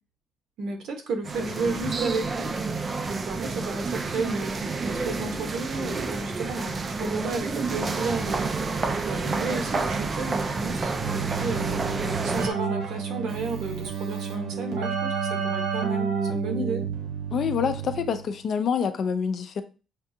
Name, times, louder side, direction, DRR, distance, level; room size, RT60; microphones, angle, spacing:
voice 1, 0.6-2.5 3.2-8.6 9.1-11.8 12.2-16.8, right 3 dB, 70° right, 1.1 m, -32 dB
sound 1, 1.2-12.5, right 4 dB, 30° right, 0.4 m, -29 dB
Keyboard (musical), 11.0-18.3, right 6 dB, 90° right, 1.0 m, -30 dB
voice 2, 17.3-19.6, left 7 dB, 50° left, 0.5 m, -26 dB
6.6 x 2.4 x 2.7 m
cardioid pair, 145°, 0 cm